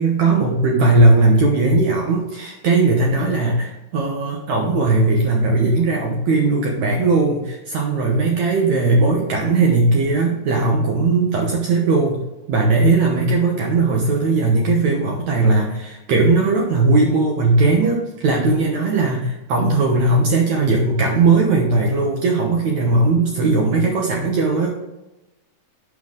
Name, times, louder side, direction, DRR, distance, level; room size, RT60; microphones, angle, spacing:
voice 1, 0.0-12.2 12.5-24.7, right 3 dB, 75° right, -1 dB, 1.7 m, -18 dB
8.7 x 5.5 x 3.8 m, 0.97 s
omnidirectional pair, 4.8 m